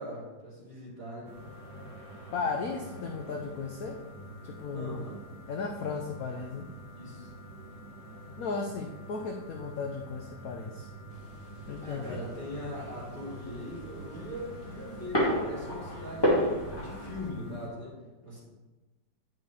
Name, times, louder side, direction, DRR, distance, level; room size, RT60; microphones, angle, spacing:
voice 1, 0.0-1.3 4.6-5.2 6.9-7.3 11.8-18.0 18.2-18.4, left 1 dB, 25° right, -9 dB, 3.1 m, -41 dB
sound 1, 1.2-17.7, right 1 dB, 65° right, 1.8 m, -46 dB
voice 2, 2.3-4.0 4.4-5.0 5.5-6.7 8.4-10.9 11.7-12.2, left 4 dB, 65° left, 3 dB, 0.9 m, -35 dB
sound 2, 11.1-17.3, equal, 15° left, 1.8 m, -33 dB
9.3 x 6.0 x 3.3 m, 1.2 s
omnidirectional pair, 2.0 m